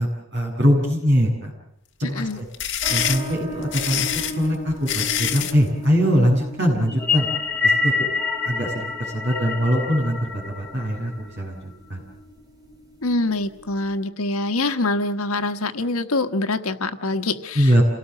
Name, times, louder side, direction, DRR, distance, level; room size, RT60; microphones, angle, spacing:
voice 1, 0.0-1.5 2.0-2.4 2.9-4.1 4.4-7.3 7.6-8.1 8.4-8.9 9.1-12.0 17.5-17.8, equal, 50° right, 1 dB, 7.8 m, -22 dB
sound 1, 2.3-5.6, left 10 dB, 55° left, 1.7 m, -25 dB
sound 2, 2.8-13.9, right 1 dB, 20° right, 3.0 m, -39 dB
sound 3, 6.9-11.4, left 4 dB, 5° left, 2.4 m, -26 dB
voice 2, 13.0-17.8, left 2 dB, 80° left, 9 dB, 1.3 m, -25 dB
28.0 x 18.5 x 7.6 m, 0.72 s
head